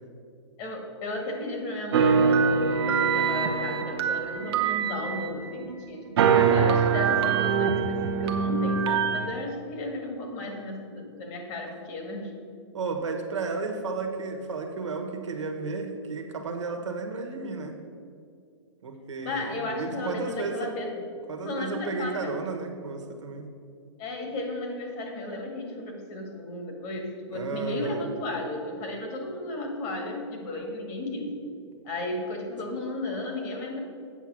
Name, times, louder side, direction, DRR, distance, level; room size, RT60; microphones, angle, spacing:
voice 1, 0.6-6.1 6.5-12.3 19.2-20.9 21.4-22.3 24.0-31.4 31.8-33.8, left 2 dB, 35° left, 2 dB, 2.0 m, -34 dB
sound 1, 1.9-5.7 6.2-9.3, right 6 dB, 60° right, 0.9 m, -23 dB
voice 2, 12.7-17.7 18.8-20.7 21.3-23.5 27.3-28.1, right 4 dB, 85° right, 3 dB, 1.4 m, -33 dB
8.1 x 5.9 x 6.3 m, 2.3 s
hypercardioid pair, 135°, 15 cm